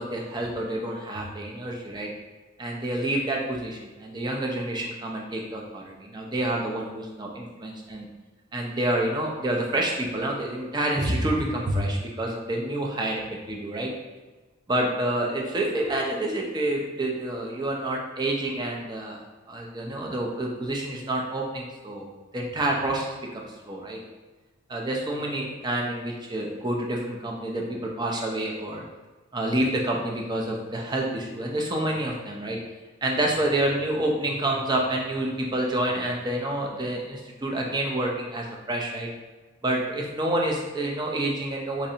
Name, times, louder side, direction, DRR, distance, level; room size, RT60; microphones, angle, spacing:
voice 1, 0.0-2.1 2.6-8.1 8.5-13.9 14.7-19.2 19.5-24.0 24.7-27.6 28.0-28.8 29.3-32.6 33.0-39.1 39.6-41.9, right 1 dB, 20° right, 0 dB, 0.5 m, -28 dB
4.1 x 2.5 x 2.7 m, 1.3 s
head